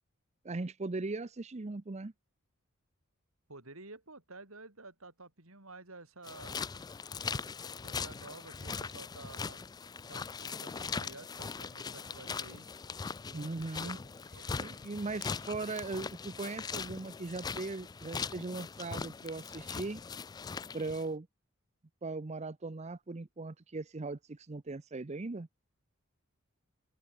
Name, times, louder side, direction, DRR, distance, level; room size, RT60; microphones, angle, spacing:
voice 1, 0.4-2.1 13.3-14.0 14.6-20.0 20.7-21.3 22.0-25.5, right 3 dB, 30° right, 0.6 m, -39 dB
voice 2, 3.5-6.6 7.8-9.6 10.1-12.7 13.3-14.0 14.3-14.9, right 3 dB, 80° right, 5.2 m, -52 dB
sound 1, 6.2-21.1, left 5 dB, 20° left, 0.3 m, -40 dB
head